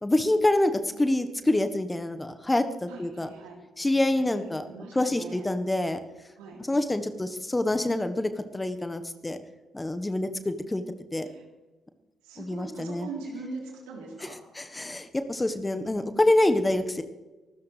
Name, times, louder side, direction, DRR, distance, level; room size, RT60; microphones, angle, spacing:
voice 1, 0.0-3.3 3.8-4.6 4.9-6.0 6.7-9.4 9.7-10.8 11.1-11.3 12.4-13.1 14.5-17.0, left 1 dB, 20° left, 9 dB, 1.4 m, -26 dB
voice 2, 2.9-3.6 4.1-5.5 6.4-6.6 11.2-11.4 12.2-14.4, right 3 dB, 75° right, -1 dB, 3.7 m, -41 dB
24.5 x 13.5 x 3.4 m, 1.2 s
hypercardioid pair, 40°, 0 cm